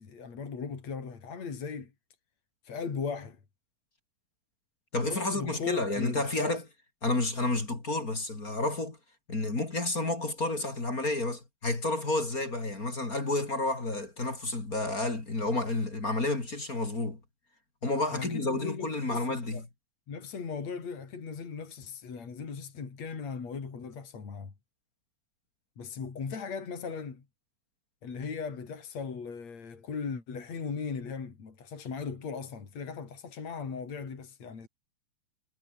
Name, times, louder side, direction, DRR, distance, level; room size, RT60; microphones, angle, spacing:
voice 1, 0.0-1.9 2.6-3.4 5.1-6.6 18.1-19.6 20.1-24.5 25.8-27.2 28.0-34.7, left 5 dB, 65° left, 5.1 m, -38 dB
voice 2, 4.9-6.6 7.0-9.0 9.3-17.2 17.8-19.7, left 2 dB, 30° left, 4.2 m, -30 dB
omnidirectional pair, 3.3 m